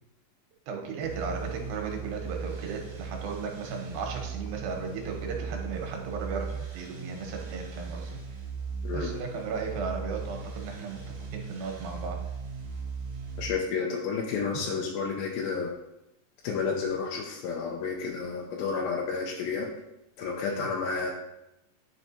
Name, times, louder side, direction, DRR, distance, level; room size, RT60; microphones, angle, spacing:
voice 1, 0.7-8.2 8.9-11.0 11.3-12.2 14.5-14.7 20.5-20.6, right 5 dB, 90° right, 1 dB, 2.8 m, -35 dB
sound 1, 1.0-13.5, right 5 dB, 60° right, 2.4 m, -38 dB
voice 2, 13.4-15.7 16.4-19.7 20.2-21.1, left 5 dB, 85° left, 0 dB, 2.4 m, -31 dB
9.9 x 4.5 x 2.7 m, 0.92 s
omnidirectional pair, 4.1 m